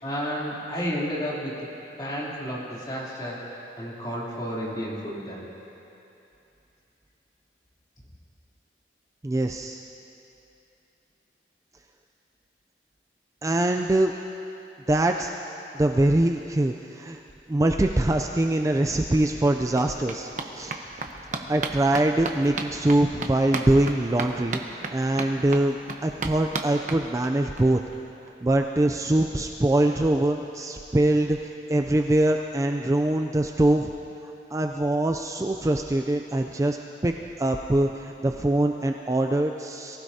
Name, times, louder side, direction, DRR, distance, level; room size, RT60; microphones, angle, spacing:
voice 1, 0.0-1.5 2.0-5.4, equal, 25° left, -7 dB, 3.0 m, -31 dB
voice 2, 9.2-9.8 13.4-14.1 14.9-15.3 15.7-17.2 17.5-20.8 21.3-27.8 28.4-33.9 34.5-36.8 37.0-40.0, right 1 dB, 20° right, 4 dB, 0.4 m, -23 dB
sound 1, 18.8-18.9 19.1-27.6 27.9-28.0 28.3-28.4 28.6-28.7, right 3 dB, 45° right, 0.9 m, -35 dB
23.0 x 15.5 x 2.8 m, 2.9 s
head